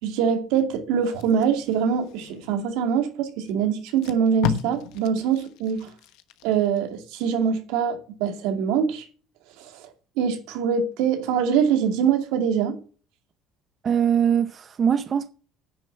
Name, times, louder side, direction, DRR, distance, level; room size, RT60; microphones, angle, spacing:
voice 1, 0.0-5.9 6.4-9.1 9.6-9.9 10.2-12.8, right 7 dB, 85° right, 2.5 m, -24 dB
Packing tape duct tape, 1.0-2.7 3.4-3.5 3.8-6.8 7.2-7.5, left 11 dB, 75° left, 1.2 m, -34 dB
voice 2, 13.8-15.3, right 8 dB, 30° right, 0.6 m, -22 dB
9.8 x 6.7 x 7.4 m
cardioid pair, 155°, 0 cm